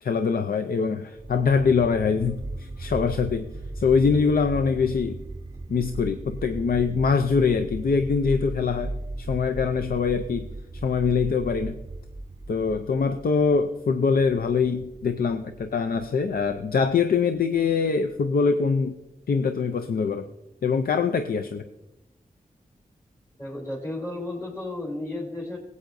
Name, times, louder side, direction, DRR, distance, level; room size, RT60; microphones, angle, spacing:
voice 1, 0.0-3.5 3.8-5.2 5.7-10.5 10.8-11.8 12.5-19.0 19.3-20.3 20.6-21.6, left 5 dB, 80° left, 8 dB, 0.5 m, -23 dB
sound 1, 1.2-18.2, right 2 dB, 25° right, 0.6 m, -37 dB
voice 2, 23.4-25.6, left 2 dB, 20° left, -5 dB, 3.0 m, -33 dB
16.5 x 8.4 x 2.6 m, 0.94 s
cardioid pair, 50°, 15 cm